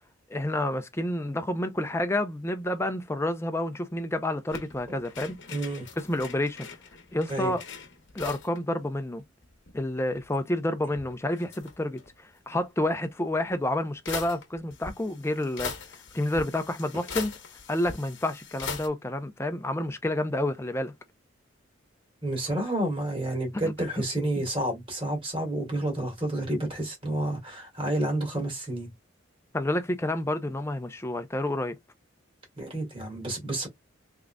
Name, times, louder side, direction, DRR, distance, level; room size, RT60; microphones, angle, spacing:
voice 1, 0.3-5.4 6.0-6.7 7.1-7.6 8.1-9.2 9.7-12.0 12.5-15.7 16.1-17.3 17.7-20.9 23.6-23.7 29.5-31.8, left 1 dB, 15° left, 0.5 m, -29 dB
sound 1, 4.5-8.6 8.9-9.0 9.2-10.3 10.8-12.1 13.3-13.4 14.1-18.9, left 5 dB, 60° left, 1.0 m, -41 dB
voice 2, 5.5-5.9 7.3-7.6 22.2-28.9 32.6-33.7, right 1 dB, 25° right, 2.0 m, -30 dB
3.7 x 3.7 x 2.2 m
head